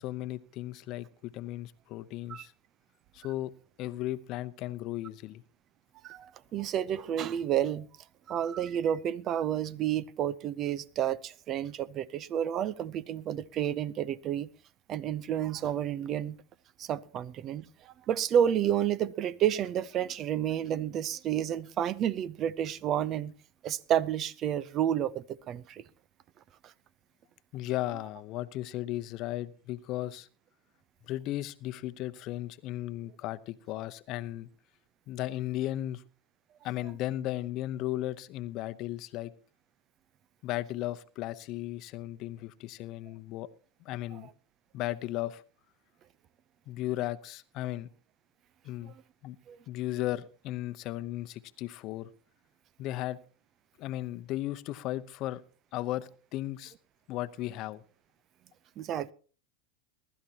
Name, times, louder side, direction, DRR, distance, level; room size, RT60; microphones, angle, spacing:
voice 1, 0.0-2.5 3.1-3.5 3.8-5.4 27.5-30.3 31.1-34.5 35.1-36.0 36.6-39.3 40.4-43.5 43.8-44.3 44.7-45.4 46.7-47.9 48.6-48.9 49.2-49.4 49.7-52.1 52.8-53.2 53.8-55.4 55.7-56.7 57.1-57.8, left 15 dB, 50° left, 0.8 m, -35 dB
voice 2, 6.0-7.9 8.3-14.5 14.9-16.4 16.8-23.3 23.6-25.8 26.6-26.7 44.1-44.2 48.8-48.9 49.5-49.6 58.8-59.1, right 10 dB, 40° right, 0.6 m, -30 dB
22.0 x 12.0 x 2.9 m
hypercardioid pair, 110°, 0 cm